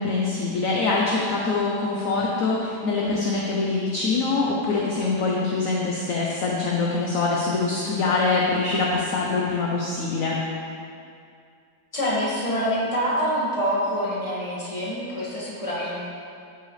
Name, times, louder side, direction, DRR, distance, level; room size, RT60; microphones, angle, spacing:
voice 1, 0.0-10.4, left 3 dB, 55° left, -3 dB, 1.2 m, -24 dB
voice 2, 11.9-16.0, equal, 20° left, -7 dB, 2.1 m, -26 dB
13.0 x 6.5 x 3.3 m, 2.4 s
omnidirectional pair, 1.9 m